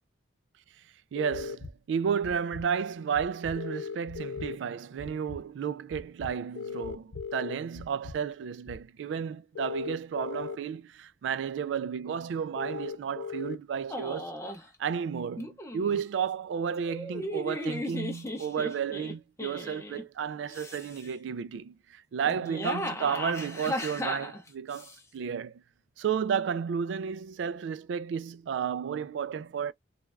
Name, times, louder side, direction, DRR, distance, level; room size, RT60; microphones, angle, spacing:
sound 1, 1.1-1.6 3.5-4.6 6.5-7.6 9.5-10.6 12.5-13.6, left 6 dB, 85° left, 0.3 m, -37 dB
voice 1, 1.1-14.3 14.8-25.6 26.0-29.7, right 7 dB, 75° right, 0.3 m, -32 dB
sound 2, 1.3-1.7 2.2-2.6 3.1-3.6 4.1-4.5 5.0-5.4 5.9-6.3 6.8-7.2 7.7-8.2 8.7-8.9, left 2 dB, 60° left, 0.7 m, -43 dB
sound 3, 13.9-14.7 15.4-16.0 16.9-20.0 20.5-21.1 22.3-25.0, left 1 dB, 15° left, 0.5 m, -36 dB
3.1 x 2.3 x 2.2 m
head